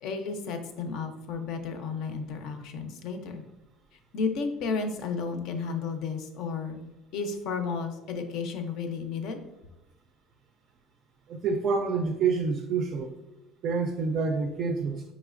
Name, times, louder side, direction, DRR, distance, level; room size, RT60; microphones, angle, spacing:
voice 1, 0.0-3.4 4.1-6.8 7.1-9.4, left 5 dB, 60° left, 7 dB, 0.5 m, -32 dB
voice 2, 11.3-13.1 13.6-15.1, right 5 dB, 50° right, 5 dB, 0.3 m, -27 dB
4.8 x 3.1 x 2.4 m, 1.0 s
cardioid pair, 140°, 0 cm